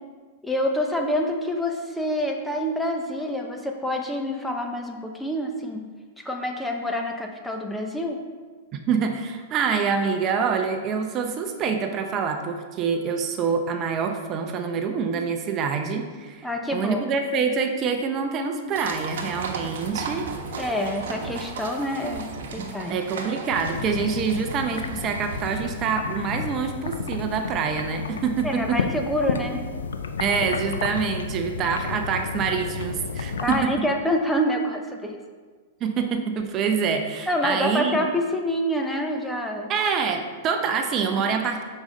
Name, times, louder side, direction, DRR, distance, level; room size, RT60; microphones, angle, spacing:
voice 1, 0.4-5.9 6.2-8.2 16.4-17.0 20.6-23.0 28.4-29.6 33.4-35.2 37.3-39.7, left 1 dB, 5° left, 2 dB, 0.8 m, -27 dB
voice 2, 8.9-20.3 22.6-28.8 30.2-33.7 35.8-38.0 39.7-41.6, right 6 dB, 35° right, 5 dB, 0.7 m, -26 dB
sound 1, 18.8-25.7, right 4 dB, 70° right, 1.0 m, -35 dB
sound 2, 23.5-33.7, left 5 dB, 85° left, 0.5 m, -32 dB
7.0 x 5.3 x 3.8 m, 1.5 s
hypercardioid pair, 110°, 0 cm